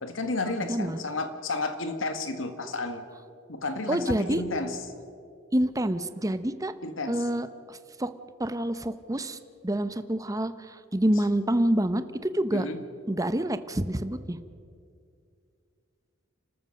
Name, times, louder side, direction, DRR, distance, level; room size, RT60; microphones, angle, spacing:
voice 1, 0.0-3.0 3.5-4.8 6.8-7.2 12.5-12.8, left 3 dB, 85° left, 8 dB, 1.9 m, -32 dB
voice 2, 0.7-1.0 3.9-4.4 5.5-6.7 7.1-8.1 8.4-9.4 9.6-12.6 13.1-14.4, right 1 dB, 20° right, 12 dB, 0.8 m, -27 dB
30.0 x 13.5 x 6.5 m, 2.4 s
head